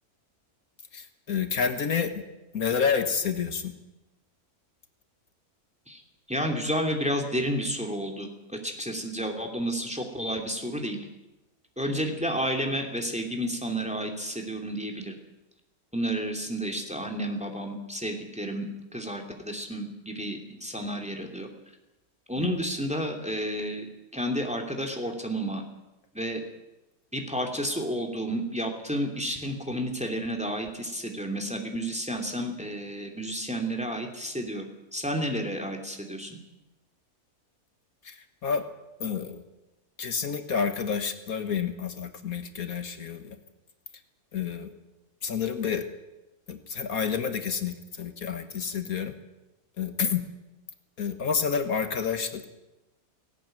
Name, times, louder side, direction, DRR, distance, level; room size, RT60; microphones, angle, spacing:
voice 1, 0.9-2.2 2.5-3.7 22.4-22.5 38.0-38.6 39.0-39.4 40.0-43.4 44.3-44.7 45.2-45.9 46.5-49.1 49.8-50.2 51.0-52.5, left 6 dB, 70° left, 8 dB, 1.8 m, -29 dB
voice 2, 6.3-11.0 11.8-15.2 15.9-18.7 18.9-21.5 22.3-23.9 24.1-25.6 26.1-26.4 27.1-34.6 34.9-36.4, equal, 5° right, 3 dB, 2.7 m, -31 dB
18.0 x 17.5 x 9.0 m, 1.0 s
omnidirectional pair, 1.6 m